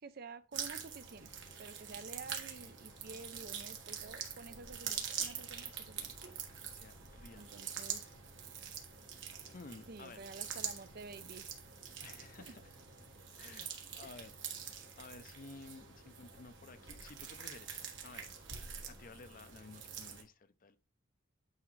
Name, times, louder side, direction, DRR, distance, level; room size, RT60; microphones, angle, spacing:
voice 1, 0.0-1.3 1.6-6.1 7.3-8.0 9.9-11.5 12.5-12.6, right 3 dB, 50° right, 0.5 m, -50 dB
sound 1, 0.5-20.2, right 7 dB, 70° right, 1.5 m, -45 dB
sound 2, 1.9-13.6, right 1 dB, 20° right, 0.7 m, -66 dB
voice 2, 6.6-7.5 9.4-10.2 12.0-12.7 13.4-13.7 14.0-14.4 15.0-18.3 18.9-20.8, left 3 dB, 45° left, 0.6 m, -53 dB
9.4 x 5.0 x 3.2 m
head